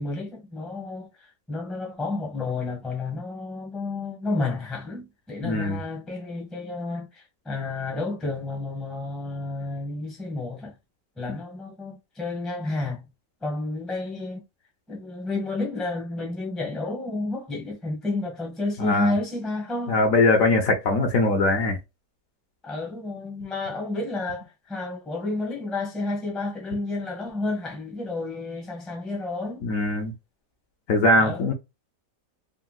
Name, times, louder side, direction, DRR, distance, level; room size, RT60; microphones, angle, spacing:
voice 1, 0.0-10.7 11.2-13.1 13.4-14.4 14.9-20.1 22.6-29.6 31.2-31.5, left 2 dB, ahead, 0.7 m, -31 dB
voice 2, 5.4-5.8 18.8-19.2 19.9-21.8 29.6-30.1 30.9-31.5, left 2 dB, 60° left, 1.0 m, -21 dB
3.7 x 2.2 x 2.2 m
omnidirectional pair, 1.8 m